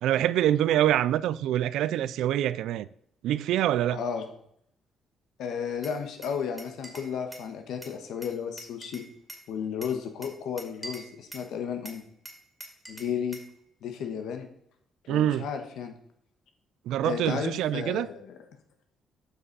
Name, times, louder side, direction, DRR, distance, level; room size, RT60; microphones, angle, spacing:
voice 1, 0.0-2.9 3.2-4.0 15.1-15.5 16.9-18.1, right 12 dB, 85° right, 0.3 m, -25 dB
voice 2, 3.9-4.3 5.4-9.0 9.5-12.0 12.9-13.4 13.8-14.5 15.0-15.9 17.0-18.4, left 7 dB, 80° left, 1.3 m, -33 dB
Glass, 5.8-7.5 7.8-9.5 9.8-11.5 11.9-13.5, right 1 dB, 15° right, 2.3 m, -45 dB
7.9 x 5.8 x 4.0 m
cardioid pair, 90°, 0 cm